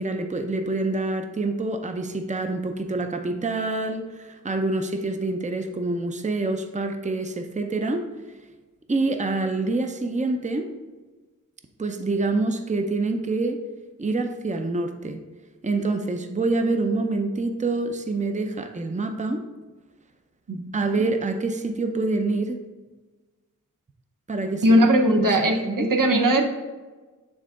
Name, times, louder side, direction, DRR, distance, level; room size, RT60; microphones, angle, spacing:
voice 1, 0.0-8.0 8.9-10.7 11.8-13.6 14.0-15.2 15.6-19.4 20.7-22.6 24.3-24.8 25.2-26.4, right 3 dB, 25° right, 6 dB, 0.5 m, -26 dB
voice 2, 24.6-26.4, right 1 dB, 80° right, 3 dB, 0.8 m, -19 dB
8.7 x 3.7 x 3.7 m, 1.3 s
wide cardioid pair, 65°, 32 cm